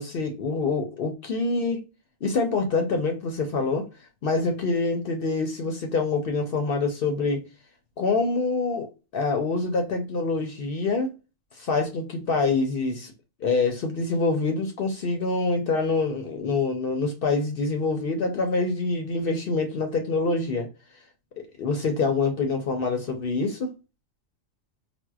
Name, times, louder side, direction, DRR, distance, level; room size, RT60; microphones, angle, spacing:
voice 1, 0.0-1.9 2.2-3.9 4.2-7.4 8.0-11.1 11.5-13.1 13.4-20.7 21.6-23.7, left 3 dB, 60° left, 0.6 m, -26 dB
4.3 x 2.1 x 2.2 m
omnidirectional pair, 1.3 m